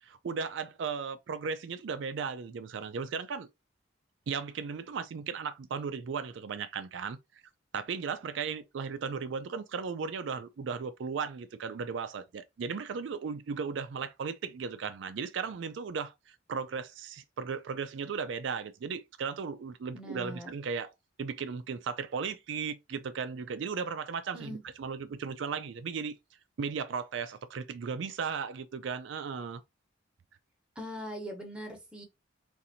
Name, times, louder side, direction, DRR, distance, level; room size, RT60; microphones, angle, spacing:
voice 1, 0.0-3.5 4.3-7.4 7.7-20.9 21.2-26.1 26.6-29.6, right 5 dB, 65° right, 0.4 m, -36 dB
voice 2, 19.9-20.5 24.3-24.6 30.8-32.0, equal, 5° right, 1.0 m, -41 dB
3.9 x 2.6 x 2.7 m
head